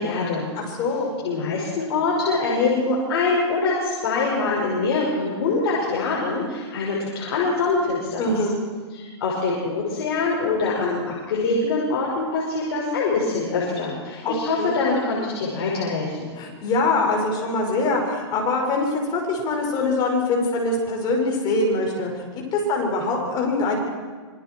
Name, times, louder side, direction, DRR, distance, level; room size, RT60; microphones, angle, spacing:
voice 1, 0.0-0.5 1.2-8.3 8.9-16.3, left 3 dB, 60° left, -4 dB, 6.1 m, -24 dB
voice 2, 0.6-1.1 8.2-8.6 14.2-14.8 16.4-22.2 22.5-23.8, left 2 dB, 30° left, 1 dB, 5.8 m, -23 dB
27.0 x 23.5 x 4.7 m, 1.5 s
hypercardioid pair, 145°, 15 cm